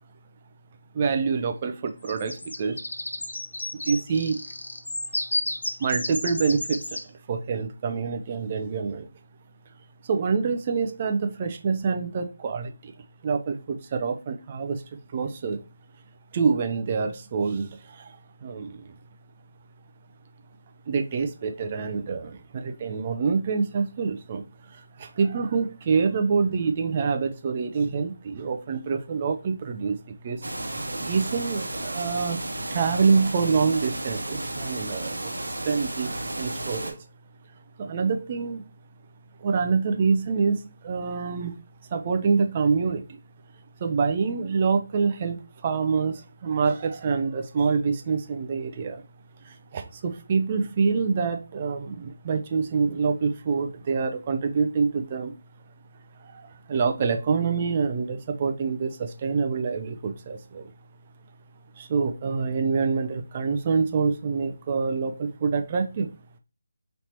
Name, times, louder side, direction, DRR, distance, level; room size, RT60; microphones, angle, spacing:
voice 1, 0.9-2.8 3.8-4.4 5.8-7.0 7.3-9.1 10.1-12.9 13.2-14.8 15.1-15.6 16.3-18.9 20.9-30.5 31.0-32.4 32.7-37.0 37.8-38.6 39.4-41.5 41.9-43.2 43.8-49.0 49.4-55.3 56.2-60.7 61.8-66.1, right 5 dB, 35° right, 6 dB, 0.5 m, -26 dB
sound 1, 2.1-7.0, left 2 dB, 80° left, 0.8 m, -32 dB
sound 2, 30.4-36.9, right 1 dB, 80° right, 1.1 m, -33 dB
3.2 x 2.8 x 4.3 m, 0.31 s
figure-of-eight pair, 155°, 0 cm